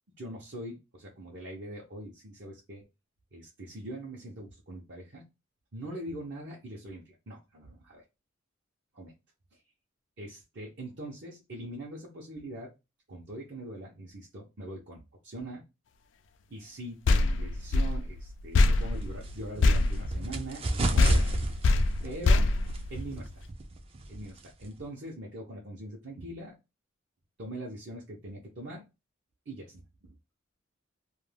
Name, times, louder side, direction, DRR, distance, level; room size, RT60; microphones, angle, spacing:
voice 1, 0.2-2.9 3.3-5.2 5.7-8.0 8.9-9.1 9.5-9.6 10.2-12.7 13.1-15.7 16.5-21.3 22.0-22.5 22.9-23.3 24.1-26.6 27.4-28.8 29.5-30.1, right 1 dB, 60° right, -3 dB, 0.8 m, -42 dB
sound 1, 17.0-20.7 21.0-23.4, left 3 dB, 65° left, 0.3 m, -25 dB
sound 2, 18.7-24.8, right 2 dB, 30° right, 0.4 m, -34 dB
2.5 x 2.2 x 3.3 m, 0.25 s
head